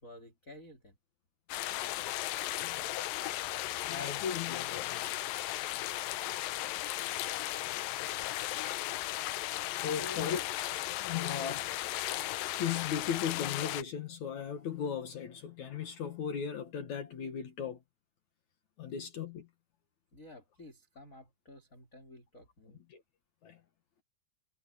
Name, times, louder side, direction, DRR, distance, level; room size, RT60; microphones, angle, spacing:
voice 1, 0.0-1.0 10.0-10.4 20.1-22.8, left 2 dB, 20° left, 4.3 m, -50 dB
sound 1, 1.5-13.8, left 15 dB, 80° left, 2.1 m, -36 dB
voice 2, 2.6-3.2 3.9-5.1 7.3-7.4 9.7-10.4 10.9-12.0 12.6-17.8 18.8-19.5 22.9-23.0 23.4-23.6, left 7 dB, 55° left, 2.3 m, -37 dB
omnidirectional pair, 4.8 m